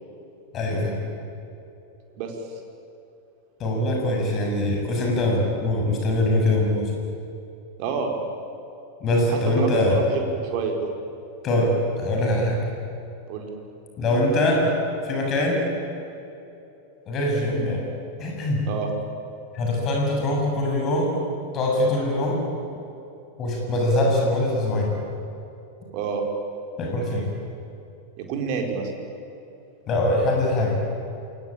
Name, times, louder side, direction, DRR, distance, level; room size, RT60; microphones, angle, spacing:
voice 1, 0.5-1.0 3.6-6.9 9.0-10.0 11.4-12.6 14.0-14.7 15.0-15.6 17.1-17.9 18.2-18.6 19.5-21.2 21.5-22.5 23.4-25.0 26.8-27.3 29.9-30.8, left 1 dB, 30° left, 0 dB, 7.3 m, -23 dB
voice 2, 7.8-8.1 9.3-10.9 13.3-13.5 18.6-18.9 25.9-26.2 28.2-28.9, right 5 dB, 45° right, 2 dB, 4.8 m, -28 dB
28.0 x 23.5 x 8.9 m, 2.8 s
figure-of-eight pair, 90°, 0 cm